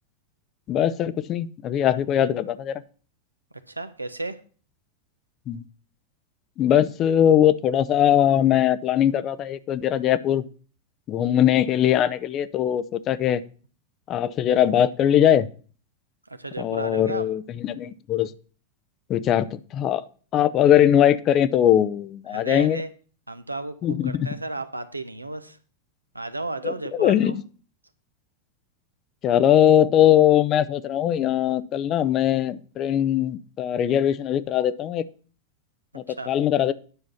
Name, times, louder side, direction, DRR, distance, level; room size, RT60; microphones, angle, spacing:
voice 1, 0.7-2.8 5.5-5.6 6.6-10.4 11.1-13.4 14.1-15.5 16.6-18.3 19.1-20.0 20.3-22.8 23.8-24.3 26.6-27.4 29.2-35.1 35.9-36.7, left 10 dB, 35° left, 16 dB, 0.6 m, -21 dB
voice 2, 3.7-4.4 16.3-17.3 22.3-22.9 23.3-25.6 26.1-27.3 36.1-36.3, right 2 dB, 85° right, 11 dB, 0.9 m, -33 dB
9.9 x 6.2 x 5.6 m, 0.40 s
figure-of-eight pair, 90°, 0 cm